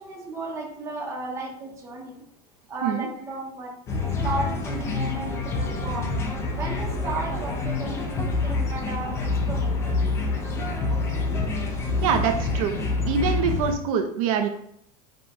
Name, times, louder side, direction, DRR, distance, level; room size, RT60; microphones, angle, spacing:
voice 1, 0.0-2.2 2.7-3.8 4.2-6.1 6.5-10.0, right 2 dB, 15° right, -1 dB, 0.7 m, -34 dB
sound 1, 3.9-13.7, left 3 dB, 15° left, 0.4 m, -27 dB
voice 2, 12.0-12.8 13.1-14.5, right 7 dB, 65° right, 5 dB, 0.5 m, -24 dB
5.1 x 2.2 x 4.2 m, 0.71 s
supercardioid pair, 180°, 19 cm